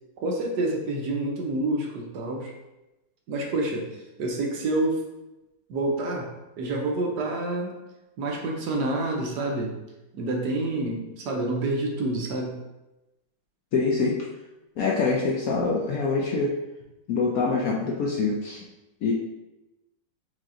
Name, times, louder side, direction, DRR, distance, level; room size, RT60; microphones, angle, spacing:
voice 1, 0.2-2.5 3.3-3.9 4.2-5.0 5.7-6.3 6.6-7.8 8.2-9.7 10.1-12.6, right 2 dB, 70° right, 0 dB, 1.3 m, -28 dB
voice 2, 13.7-14.1 14.8-16.5 17.1-18.7 19.0-19.1, left 4 dB, 70° left, -2 dB, 0.9 m, -25 dB
5.1 x 2.7 x 3.7 m, 0.99 s
omnidirectional pair, 2.0 m